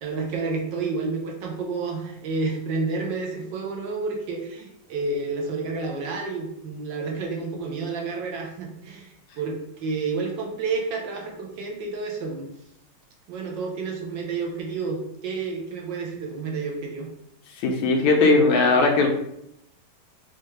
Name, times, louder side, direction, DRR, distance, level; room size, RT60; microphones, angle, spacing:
voice 1, 0.0-12.4 13.3-17.1, right 4 dB, 70° right, 0 dB, 1.3 m, -30 dB
voice 2, 17.5-19.1, left 3 dB, 85° left, 2 dB, 1.5 m, -19 dB
4.3 x 2.3 x 3.1 m, 0.77 s
omnidirectional pair, 2.1 m